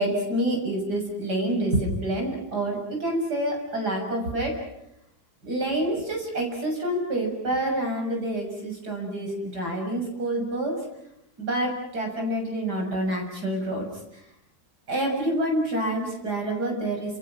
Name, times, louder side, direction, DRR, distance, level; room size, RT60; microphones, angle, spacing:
voice 1, 0.0-4.6 5.4-10.8 11.4-13.9 14.1-14.2 14.9-17.2, right 1 dB, 85° right, 2 dB, 7.5 m, -27 dB
30.0 x 28.0 x 6.0 m, 0.81 s
omnidirectional pair, 1.7 m